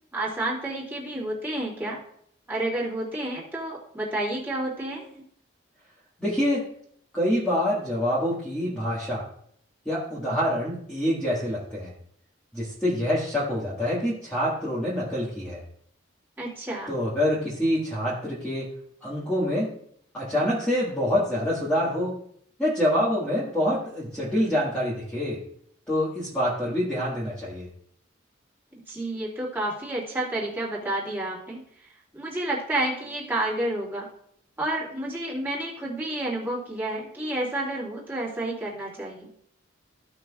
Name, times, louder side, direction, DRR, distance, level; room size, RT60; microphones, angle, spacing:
voice 1, 0.1-2.0 2.5-5.2 16.4-16.9 28.9-31.6 32.1-34.1 34.6-39.3, right 1 dB, 10° right, -6 dB, 2.6 m, -30 dB
voice 2, 6.2-6.6 7.1-9.3 9.9-11.9 12.5-15.6 16.9-18.7 19.0-19.7 20.1-22.2 22.6-25.4 25.9-27.7, equal, 5° left, -9 dB, 1.7 m, -26 dB
15.0 x 5.9 x 2.4 m, 0.67 s
head